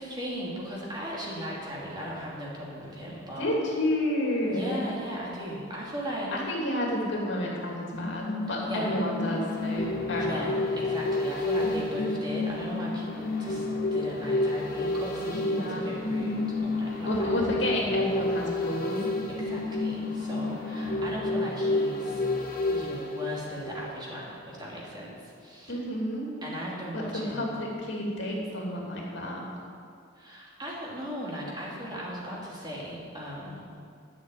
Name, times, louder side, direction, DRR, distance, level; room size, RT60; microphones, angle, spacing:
voice 1, 0.0-3.5 4.5-6.3 8.6-9.0 10.2-17.5 19.3-22.2 22.7-25.8 26.4-27.5 30.1-33.7, equal, 20° right, -5 dB, 2.8 m, -37 dB
voice 2, 3.4-4.8 6.3-10.5 15.5-15.8 17.0-19.0 25.7-26.3 26.9-29.4, left 1 dB, 65° left, -3 dB, 2.8 m, -30 dB
sound 1, 7.9-24.2 24.5-24.6, left 2 dB, 50° left, 1.9 m, -30 dB
12.0 x 6.5 x 9.3 m, 2.3 s
head